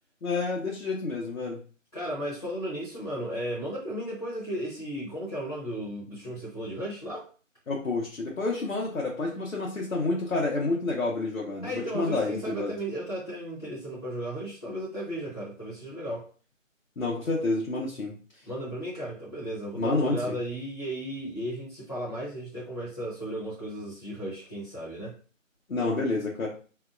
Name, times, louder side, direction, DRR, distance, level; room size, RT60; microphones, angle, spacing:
voice 1, 0.2-1.6 7.7-12.8 17.0-18.1 19.8-20.4 25.7-26.5, left 3 dB, 85° left, -2 dB, 1.0 m, -29 dB
voice 2, 1.9-7.3 11.6-16.3 18.5-25.2, right 1 dB, 30° left, -8 dB, 0.8 m, -35 dB
2.7 x 2.2 x 2.4 m, 0.38 s
figure-of-eight pair, 165°, 40 cm